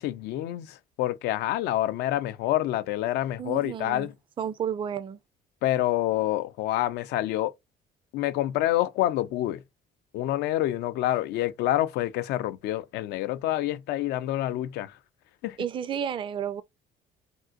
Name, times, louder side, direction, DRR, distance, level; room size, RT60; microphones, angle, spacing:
voice 1, 0.0-4.1 5.6-7.5 8.1-9.6 10.1-15.0 15.4-15.6, left 14 dB, 80° left, 0.4 m, -27 dB
voice 2, 3.4-4.1 4.4-5.2 15.6-16.6, right 8 dB, 30° right, 0.4 m, -31 dB
3.7 x 2.5 x 2.3 m
cardioid pair, 110°, 17 cm